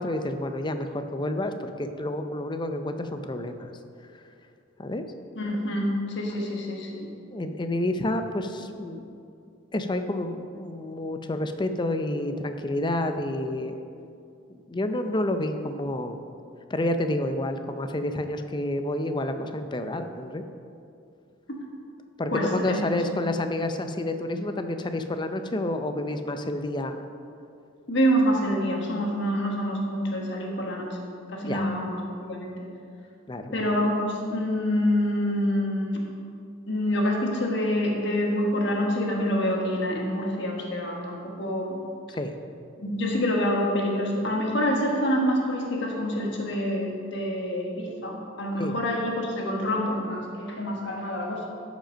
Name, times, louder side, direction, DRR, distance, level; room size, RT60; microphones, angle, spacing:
voice 1, 0.0-3.7 4.8-5.0 7.3-9.2 9.7-13.8 14.5-16.2 16.7-20.4 22.2-27.0 31.4-31.7 33.3-33.6 42.1-42.4 48.6-48.8, left 1 dB, 25° left, 7 dB, 0.5 m, -29 dB
voice 2, 5.3-7.1 21.5-21.6 22.3-23.0 27.9-30.9 31.3-32.7 33.5-36.0 36.7-41.8 42.8-51.4, equal, 60° left, -1 dB, 1.3 m, -26 dB
12.5 x 5.2 x 5.1 m, 2.5 s
head